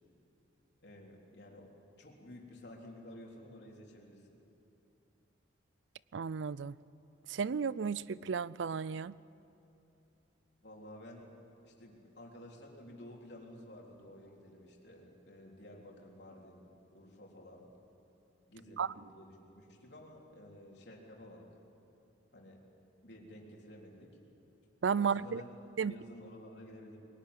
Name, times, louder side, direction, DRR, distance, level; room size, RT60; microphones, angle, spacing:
voice 1, 0.8-1.7 2.0-4.4 10.6-11.3 11.6-16.7 16.9-17.7 18.5-21.6 22.3-22.6 23.0-24.1 25.0-25.5 25.8-27.0, left 1 dB, 65° left, -1 dB, 3.7 m, -52 dB
voice 2, 6.1-6.7 7.3-9.1 18.8-18.9 24.8-25.4 25.8-25.9, right 6 dB, 75° right, 20 dB, 0.4 m, -33 dB
22.5 x 17.5 x 9.8 m, 2.9 s
head